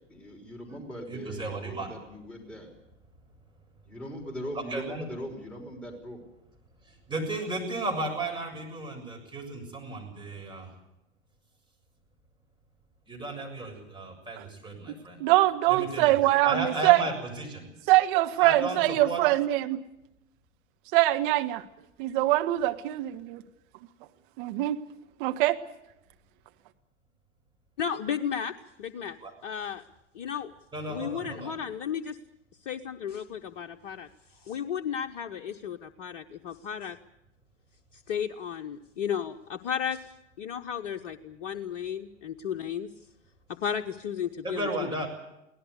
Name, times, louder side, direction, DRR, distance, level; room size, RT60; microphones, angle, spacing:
voice 1, 0.1-2.7 3.8-6.2, equal, 5° left, -1 dB, 5.5 m, -40 dB
voice 2, 1.1-1.9 4.7-5.0 6.9-10.7 13.1-15.2 15.7-16.1 16.4-17.7 18.4-19.2 29.2-29.3 30.7-31.6 44.4-45.1, right 2 dB, 15° right, 1 dB, 7.0 m, -34 dB
voice 3, 15.2-17.0 17.9-19.8 20.9-21.6 22.0-23.4 24.4-24.8 25.2-25.6, right 16 dB, 45° right, 7 dB, 1.6 m, -23 dB
voice 4, 27.8-28.5 28.8-29.2 29.4-29.8 30.1-30.5 30.9-32.2 32.6-34.1 34.4-37.0 38.1-40.1 40.4-42.9 43.5-44.9, left 8 dB, 50° left, 5 dB, 1.0 m, -33 dB
23.5 x 17.5 x 8.3 m, 0.89 s
figure-of-eight pair, 90°, 36 cm